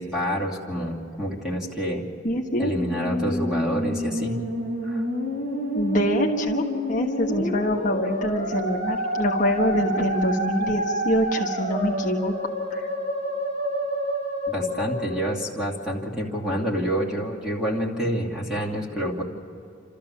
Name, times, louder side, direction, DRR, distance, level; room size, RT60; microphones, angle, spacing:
voice 1, 0.0-2.0 2.6-4.4 4.8-5.0 14.5-19.2, equal, 5° right, -4 dB, 2.7 m, -28 dB
voice 2, 2.2-2.7 5.7-12.3 12.7-12.9, equal, 40° left, -1 dB, 1.3 m, -25 dB
Musical instrument, 2.6-15.9, equal, 55° right, 3.8 m, -29 dB
29.5 x 13.5 x 7.2 m, 2.7 s
head